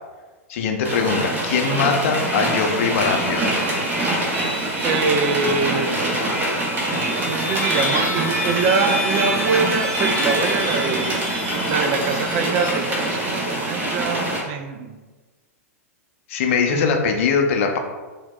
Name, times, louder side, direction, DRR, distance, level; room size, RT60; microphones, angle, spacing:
voice 1, 0.5-3.5 16.3-17.8, left 5 dB, 55° left, 4 dB, 0.5 m, -21 dB
sound 1, 0.8-14.4, right 1 dB, 20° right, 1.0 m, -24 dB
sound 2, 1.6-11.9, right 1 dB, 60° right, 0.8 m, -31 dB
voice 2, 4.8-6.4 7.2-11.2 11.7-15.0 16.7-16.9, right 4 dB, 45° right, 6 dB, 0.3 m, -24 dB
sound 3, 6.7-13.3, left 1 dB, 5° left, 0.5 m, -31 dB
2.9 x 2.1 x 3.5 m, 1.3 s
hypercardioid pair, 105°, 8 cm